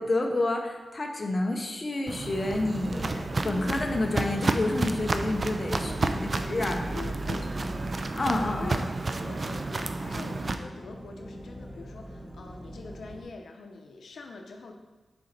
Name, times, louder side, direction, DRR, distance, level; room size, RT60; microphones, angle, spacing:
voice 1, 0.0-7.0 7.4-7.5 8.2-8.8, left 2 dB, 35° left, 2 dB, 0.7 m, -29 dB
Walk footsteps, 2.1-10.5, right 3 dB, 40° right, 0.4 m, -31 dB
sound 1, 2.8-13.2, equal, 5° right, 0.9 m, -41 dB
voice 2, 6.6-7.5 8.5-14.7, left 4 dB, 90° left, 3 dB, 0.6 m, -44 dB
6.8 x 4.4 x 4.0 m, 1.2 s
wide cardioid pair, 130°, 0 cm